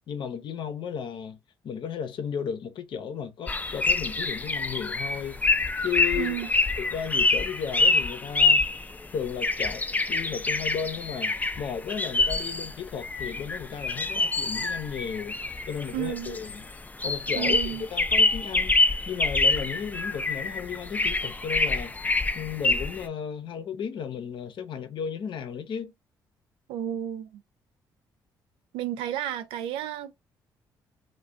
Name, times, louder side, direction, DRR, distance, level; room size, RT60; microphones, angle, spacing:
voice 1, 0.1-1.4 1.6-5.4 5.8-6.4 6.8-8.6 9.1-15.4 15.7-16.6 17.0-18.8 19.1-22.0 22.3-25.9, left 7 dB, 60° left, 0.6 m, -34 dB
sound 1, 3.5-23.1, left 3 dB, 20° left, 0.4 m, -26 dB
voice 2, 6.2-6.5 15.9-16.4 17.4-17.9 26.7-27.4 28.7-30.1, right 12 dB, 80° right, 0.4 m, -32 dB
2.4 x 2.2 x 3.2 m
supercardioid pair, 55°, 9 cm